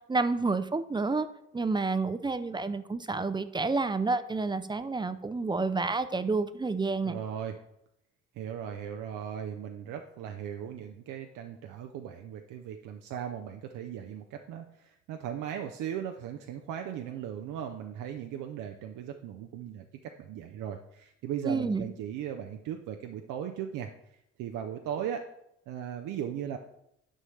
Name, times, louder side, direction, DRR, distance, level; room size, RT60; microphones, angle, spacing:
voice 1, 0.1-1.3 1.5-7.1 21.4-21.9, right 3 dB, 15° right, 12 dB, 0.4 m, -29 dB
voice 2, 7.0-7.6 8.4-25.3 25.7-26.6, right 9 dB, 85° right, 5 dB, 0.6 m, -38 dB
9.9 x 5.4 x 3.2 m, 0.80 s
cardioid pair, 90°, 30 cm